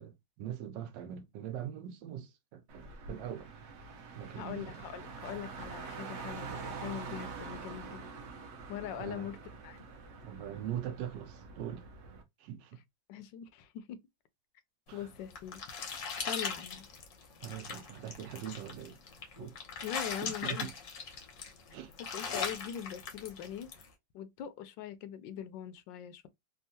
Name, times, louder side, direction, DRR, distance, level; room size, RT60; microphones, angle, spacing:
voice 1, 0.0-3.5 4.1-4.9 9.0-9.3 10.2-11.8 12.4-12.8 14.9-15.1 17.4-19.0 19.4-19.6 20.2-20.7 21.7-21.9, right 10 dB, 75° right, 1.3 m, -42 dB
Car, 2.7-12.2, right 5 dB, 60° right, 0.7 m, -45 dB
voice 2, 4.4-8.0 8.7-9.4 9.6-9.8 13.1-14.0 14.9-15.6 16.3-16.9 19.4-19.5 19.8-20.7 21.7-21.8 22.1-23.9 24.1-26.3, left 10 dB, 80° left, 1.2 m, -42 dB
sound 1, 15.0-23.9, left 5 dB, 60° left, 0.9 m, -40 dB
3.5 x 2.3 x 2.7 m
omnidirectional pair, 2.0 m